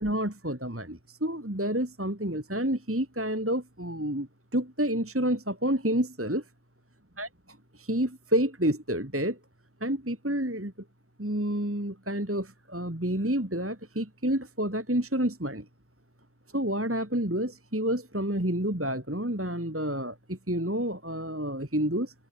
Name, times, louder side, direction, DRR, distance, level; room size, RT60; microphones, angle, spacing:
voice 1, 0.0-6.4 7.2-7.3 7.7-9.4 9.8-10.7 11.2-15.7 16.5-22.1, right 1 dB, 10° right, 2.1 m, -29 dB
omnidirectional pair, 1.8 m